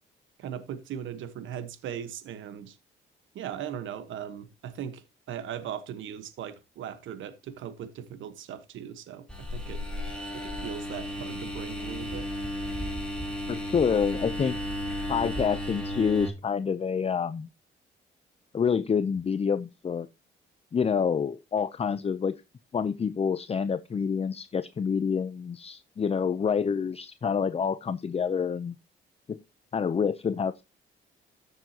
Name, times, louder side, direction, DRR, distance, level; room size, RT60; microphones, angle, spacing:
voice 1, 0.4-2.8 3.3-9.8 10.3-12.3, right 9 dB, 75° right, 1.2 m, -39 dB
sound 1, 9.3-16.3, equal, 5° left, 3.6 m, -34 dB
voice 2, 13.5-14.6 15.1-17.5 18.5-20.1 20.7-22.3 22.7-28.7 29.3-29.4 29.7-30.6, left 6 dB, 30° left, 0.6 m, -27 dB
14.0 x 7.0 x 2.8 m
cardioid pair, 90°, 20 cm